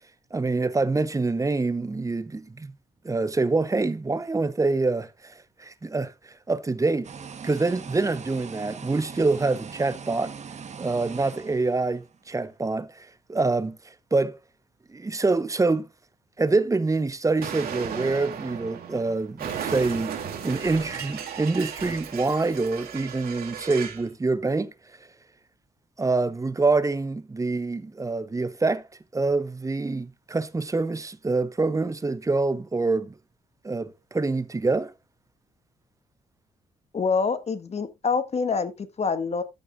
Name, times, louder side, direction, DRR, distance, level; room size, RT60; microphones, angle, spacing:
voice 1, 0.3-2.7 3.0-5.3 5.6-6.1 6.5-7.1 7.4-10.3 10.8-13.8 14.1-14.4 14.9-15.9 16.4-20.2 20.4-24.7 26.0-28.9 29.1-33.1 33.6-34.9, right 3 dB, 20° right, 0.9 m, -25 dB
sound 1, 7.0-12.2, right 6 dB, 45° right, 1.4 m, -41 dB
Explosion, 17.4-24.1, right 8 dB, 75° right, 2.2 m, -35 dB
voice 2, 36.9-39.4, left 5 dB, 40° left, 1.6 m, -26 dB
13.5 x 6.5 x 2.6 m
cardioid pair, 75°, 16 cm